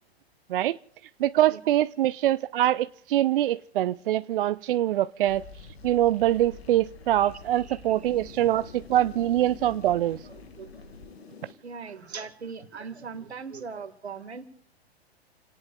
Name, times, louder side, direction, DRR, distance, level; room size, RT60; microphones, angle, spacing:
voice 1, 1.2-5.4 5.8-10.3, right 13 dB, 55° right, 0.5 m, -24 dB
sound 1, 5.3-11.5, left 4 dB, 70° left, 2.1 m, -46 dB
voice 2, 7.6-8.5 10.2-10.8 11.6-14.4, right 5 dB, 80° right, 2.1 m, -40 dB
29.5 x 18.5 x 2.4 m
figure-of-eight pair, 105°, 32 cm